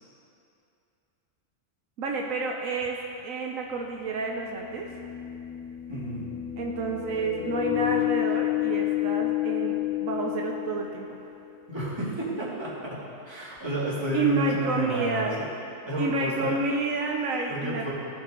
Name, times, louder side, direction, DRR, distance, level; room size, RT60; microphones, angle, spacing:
voice 1, 2.0-4.9 6.6-11.2 14.1-15.4 16.0-17.9, right 3 dB, 80° right, 1 dB, 1.1 m, -29 dB
sound 1, 2.9-3.0 4.4-11.3, left 16 dB, 65° left, 0.4 m, -30 dB
voice 2, 5.9-6.3 11.7-15.5 15.8-16.6 17.5-17.9, right 1 dB, 20° right, -8 dB, 2.4 m, -31 dB
16.5 x 5.9 x 3.7 m, 2.7 s
omnidirectional pair, 1.4 m